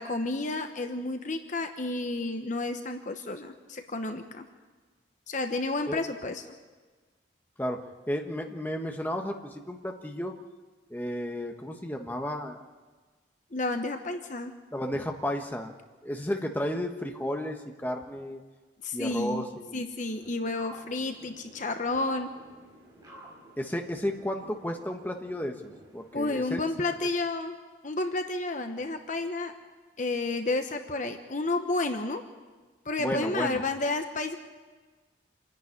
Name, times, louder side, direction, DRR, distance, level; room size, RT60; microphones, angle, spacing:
voice 1, 0.0-4.4 5.3-6.4 13.5-14.5 18.8-19.4 19.7-22.3 26.1-27.6 27.8-29.5 30.0-32.2 32.9-34.4, left 2 dB, 40° left, 6 dB, 1.0 m, -31 dB
voice 2, 8.1-10.3 10.9-12.6 14.7-15.7 16.0-18.4 18.9-19.8 23.6-26.9 33.0-33.6, equal, 10° left, 3 dB, 1.3 m, -33 dB
sound 1, 20.0-26.6, right 1 dB, 20° right, 5.1 m, -51 dB
27.0 x 10.5 x 9.9 m, 1.4 s
head